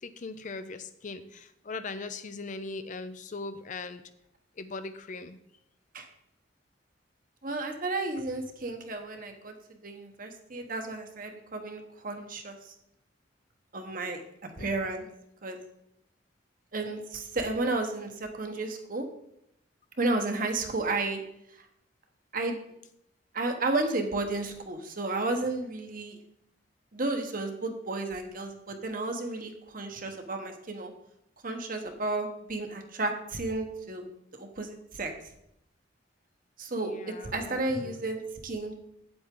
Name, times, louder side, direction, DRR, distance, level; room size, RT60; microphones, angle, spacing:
voice 1, 0.0-4.0 4.6-5.4 14.6-14.9 36.8-37.9, left 3 dB, 45° left, 11 dB, 0.5 m, -40 dB
voice 2, 7.4-9.5 9.8-12.7 13.7-15.1 15.4-15.6 16.7-19.0 20.0-21.2 22.3-22.6 23.3-26.2 26.9-30.9 31.4-34.0 34.3-35.1 36.6-38.8, right 2 dB, 50° right, 5 dB, 1.2 m, -32 dB
8.6 x 7.9 x 3.8 m, 0.78 s
head